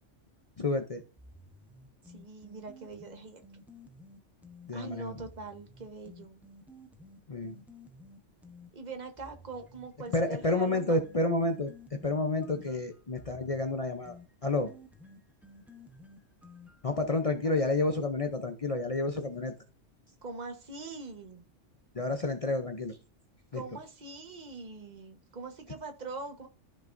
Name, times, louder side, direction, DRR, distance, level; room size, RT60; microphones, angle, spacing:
voice 1, 0.6-1.0 4.7-5.2 7.3-7.6 10.1-11.7 12.0-14.7 16.8-19.5 21.9-23.0 23.5-23.6, left 2 dB, 35° left, 6 dB, 0.6 m, -30 dB
sound 1, 1.2-4.7 5.2-8.7 9.2-17.0, left 1 dB, ahead, 0.8 m, -54 dB
voice 2, 2.0-3.4 4.7-6.4 8.7-11.0 12.7-12.8 17.4-17.9 20.2-21.5 23.5-26.5, right 3 dB, 35° right, 5 dB, 1.3 m, -43 dB
14.0 x 5.6 x 2.6 m, 0.34 s
omnidirectional pair, 1.3 m